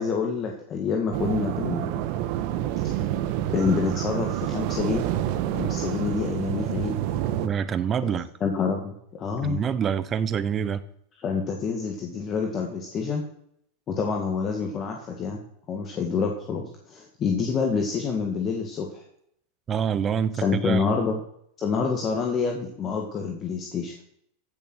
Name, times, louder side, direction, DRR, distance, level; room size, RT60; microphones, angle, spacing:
voice 1, 0.0-1.9 2.8-3.0 3.5-5.0 5.5-7.0 8.4-9.6 11.2-13.3 13.9-15.4 15.7-19.0 20.4-21.2 21.6-24.0, left 5 dB, 30° left, 1 dB, 2.0 m, -27 dB
sound 1, 1.1-7.5, right 12 dB, 55° right, 1.5 m, -28 dB
voice 2, 7.4-8.3 9.4-10.8 19.7-21.0, right 7 dB, 25° right, 15 dB, 0.9 m, -26 dB
16.0 x 6.9 x 6.4 m, 0.71 s
supercardioid pair, 135°, 0 cm